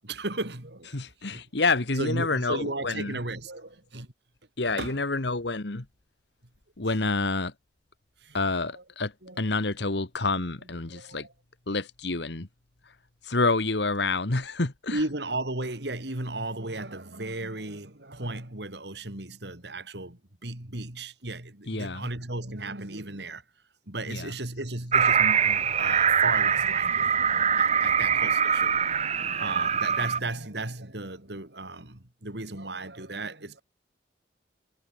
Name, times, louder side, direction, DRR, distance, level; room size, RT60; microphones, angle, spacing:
voice 1, 0.0-1.0 1.3-1.4 2.0-4.1 4.7-5.0 8.2-8.4 8.7-8.8 9.2-9.4 10.9-11.3 14.9-23.4 23.9-27.1 27.6-28.8 29.1-33.6, right 2 dB, 70° right, 3.4 m, -35 dB
voice 2, 0.9-3.2 4.6-5.8 6.8-7.5 8.3-11.3 11.7-12.5 13.2-15.0 21.7-22.1 24.1-24.3, left 3 dB, 70° left, 1.6 m, -28 dB
sound 1, 24.9-30.2, right 7 dB, 35° right, 1.4 m, -23 dB
head